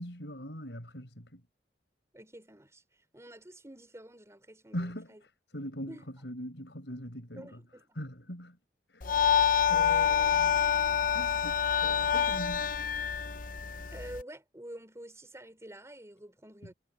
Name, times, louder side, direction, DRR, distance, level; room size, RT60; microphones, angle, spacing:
voice 1, 0.0-1.4 4.7-5.1 5.5-7.6 8.0-8.6 8.9-9.1 9.7-12.7, equal, 80° left, 6.7 m, -41 dB
voice 2, 2.1-2.8 3.1-5.2 5.9-6.0 7.4-8.0 13.9-16.7, right 1 dB, 15° right, 4.6 m, -48 dB
sound 1, 9.0-14.2, left 8 dB, 50° left, 0.9 m, -27 dB
head